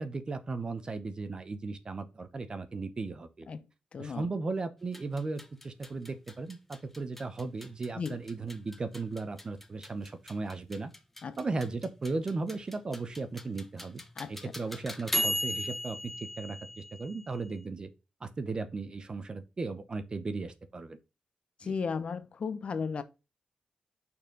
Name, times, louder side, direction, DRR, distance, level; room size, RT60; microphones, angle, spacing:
voice 1, 0.0-3.5 4.0-10.9 11.4-14.0 14.3-17.9 18.2-21.0 21.6-21.7, right 3 dB, 35° right, 0.8 m, -36 dB
voice 2, 3.9-4.3 7.9-8.2 11.2-11.4 14.2-14.3 21.6-23.0, left 5 dB, 50° left, 0.6 m, -35 dB
sound 1, 4.8-17.6, equal, 10° left, 0.7 m, -39 dB
5.7 x 4.4 x 3.8 m
wide cardioid pair, 120°, 3 cm